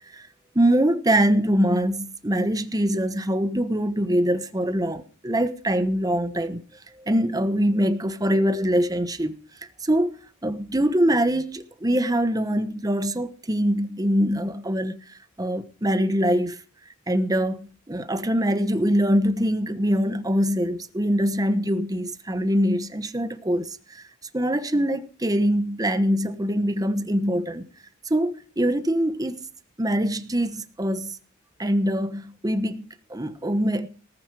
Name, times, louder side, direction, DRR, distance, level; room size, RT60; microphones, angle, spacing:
voice 1, 0.5-6.6 7.0-9.4 9.8-10.1 10.4-15.0 15.4-16.6 17.1-17.6 17.9-24.0 24.3-27.6 28.1-29.4 29.8-31.2 31.6-33.9, equal, 20° right, 1.1 m, -23 dB
19.0 x 9.4 x 4.8 m
head